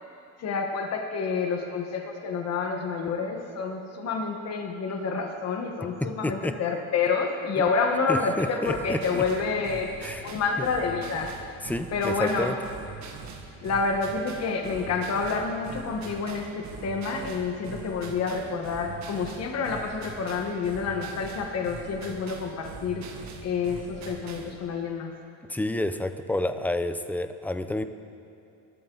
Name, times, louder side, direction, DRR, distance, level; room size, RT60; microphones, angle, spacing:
voice 1, 0.4-9.9 10.2-11.3 11.9-12.5 13.6-23.1 23.4-25.1, left 4 dB, 45° left, 3 dB, 1.4 m, -28 dB
voice 2, 6.0-6.5 8.1-9.5 10.0-10.3 10.6-10.7 11.6-12.6 25.5-27.8, left 1 dB, 5° left, 10 dB, 0.5 m, -29 dB
sound 1, 8.6-24.6, right 5 dB, 50° right, 1.8 m, -42 dB
24.5 x 13.0 x 3.9 m, 2.8 s
cardioid pair, 150°, 35 cm